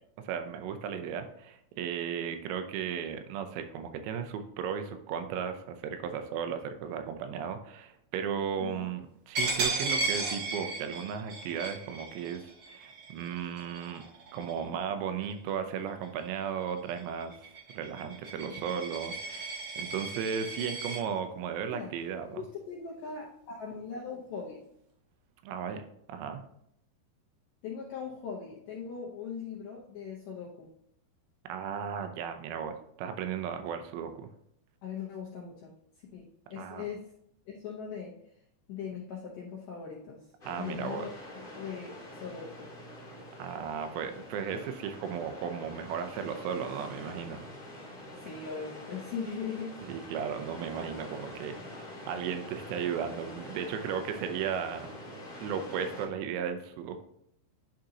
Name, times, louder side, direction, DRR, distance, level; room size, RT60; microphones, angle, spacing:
voice 1, 0.2-14.0 14.3-17.3 17.7-22.4 25.4-25.8 26.1-26.4 31.5-34.3 36.6-36.9 40.4-41.1 43.4-47.4 49.9-54.9 55.4-57.0, right 7 dB, 85° right, 7 dB, 2.9 m, -35 dB
Coin (dropping), 9.3-14.7 15.2-15.5 15.9-21.0, right 3 dB, 55° right, 3.0 m, -35 dB
voice 2, 22.3-24.6 27.6-30.7 34.8-35.7 36.1-37.1 37.5-38.2 38.7-40.3 40.6-41.1 41.5-42.7 48.2-49.8, left 6 dB, 75° left, -4 dB, 2.0 m, -40 dB
sound 1, 40.4-56.1, left 1 dB, 25° left, 1.2 m, -45 dB
10.5 x 3.8 x 2.8 m, 0.73 s
omnidirectional pair, 5.1 m